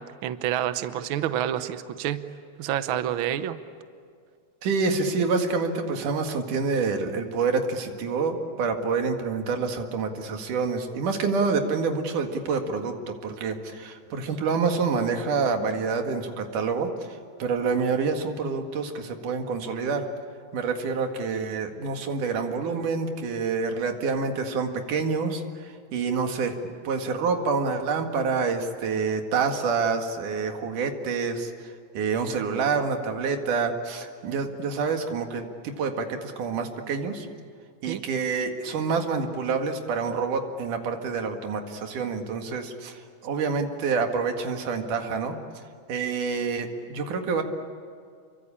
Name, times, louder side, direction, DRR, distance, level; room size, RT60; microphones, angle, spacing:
voice 1, 0.0-2.2 2.6-3.6 37.9-38.0, right 11 dB, 70° right, 11 dB, 1.2 m, -28 dB
voice 2, 4.6-12.9 13.2-20.0 20.5-26.5 26.8-37.3 37.8-45.4 45.9-47.4, right 4 dB, 90° right, 5 dB, 3.5 m, -27 dB
29.0 x 23.5 x 8.6 m, 2.2 s
omnidirectional pair, 3.5 m